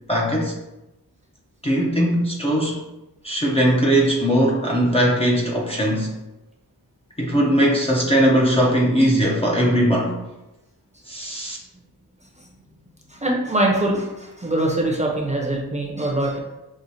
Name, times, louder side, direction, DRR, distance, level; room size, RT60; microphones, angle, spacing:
voice 1, 0.1-0.5 1.6-2.8 3.2-6.1 7.2-10.1 11.1-11.6, equal, 15° left, -4 dB, 0.6 m, -19 dB
voice 2, 13.1-16.4, right 1 dB, 15° right, -2 dB, 0.8 m, -23 dB
6.2 x 2.4 x 2.7 m, 0.97 s
wide cardioid pair, 80°, 40 cm